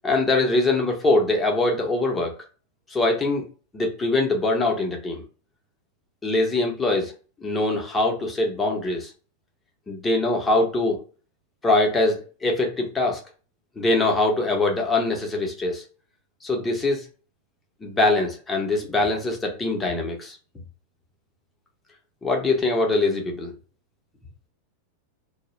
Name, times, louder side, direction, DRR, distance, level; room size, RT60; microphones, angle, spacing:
voice 1, 0.0-2.4 2.9-3.4 3.7-5.2 6.2-7.1 7.4-9.1 9.9-11.0 11.6-13.2 13.8-15.8 16.4-17.1 17.8-20.4 22.2-23.5, left 2 dB, 15° left, 0.7 m, -23 dB
2.3 x 2.0 x 2.8 m
figure-of-eight pair, 90°, 0 cm